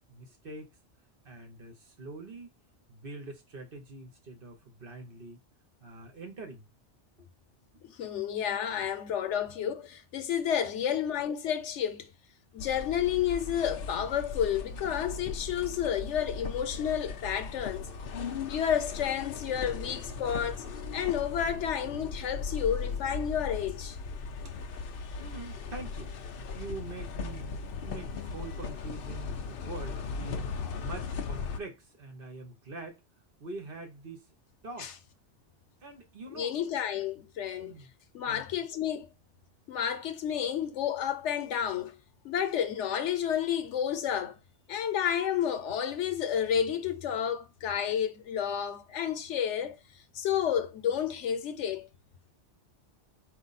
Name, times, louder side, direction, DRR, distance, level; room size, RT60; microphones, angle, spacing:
voice 1, 0.1-0.7 1.2-2.5 2.9-5.4 5.8-6.7 7.7-7.8 25.2-26.1 26.5-33.0 33.4-34.3 34.6-34.9 35.8-36.6 37.6-37.9 38.2-38.6, right 3 dB, 55° right, 1.2 m, -44 dB
voice 2, 7.8-12.1 12.5-17.9 18.5-20.6 20.9-24.0 34.8-34.9 36.3-37.8 38.1-39.1 39.7-42.0 42.2-44.4 44.7-49.8 50.1-51.9, left 9 dB, 85° left, 1.0 m, -31 dB
sound 1, 12.6-31.6, left 5 dB, 60° left, 0.7 m, -38 dB
4.4 x 2.6 x 4.1 m
omnidirectional pair, 1.2 m